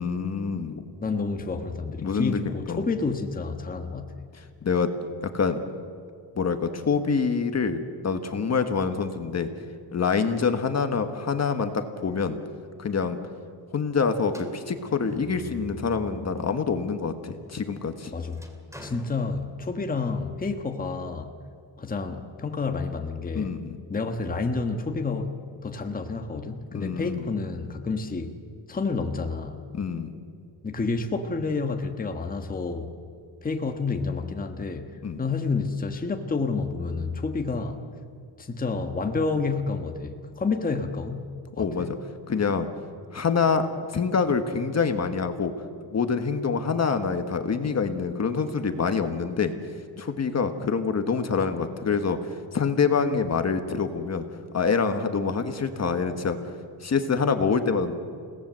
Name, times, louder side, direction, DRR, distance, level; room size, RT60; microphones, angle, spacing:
voice 1, 0.0-0.9 2.0-2.4 2.7-2.8 4.6-4.9 5.3-5.6 6.3-9.5 9.9-12.4 12.8-13.2 13.7-18.1 23.3-23.8 26.7-27.2 29.7-30.1 35.0-35.2 41.6-42.0 42.3-42.7 43.1-43.7 43.9-45.5 45.9-49.5 50.0-52.2 52.5-54.2 54.5-56.4 56.8-57.9, left 5 dB, 35° left, 8 dB, 1.5 m, -26 dB
voice 2, 1.0-4.1 18.1-18.4 18.8-21.4 21.8-23.6 23.9-25.3 25.6-28.3 28.7-29.6 30.6-32.9 33.4-37.8 38.4-41.2 41.6-41.9, left 4 dB, 20° left, 5 dB, 1.4 m, -29 dB
sound 1, 14.3-16.7 17.1-20.0, equal, 5° right, 2.5 m, -46 dB
30.0 x 18.0 x 7.6 m, 2.3 s
cardioid pair, 140°, 43 cm